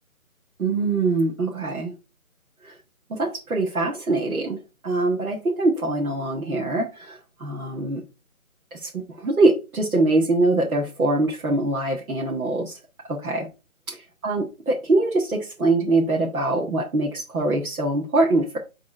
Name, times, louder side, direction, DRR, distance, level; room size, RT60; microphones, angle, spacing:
voice 1, 0.6-1.9 2.6-2.8 3.1-8.0 8.7-12.8 13.1-13.5 13.9-14.0 14.2-18.6, right 2 dB, 75° right, 1.7 m, -23 dB
6.4 x 3.7 x 4.2 m
hypercardioid pair, 180°, 43 cm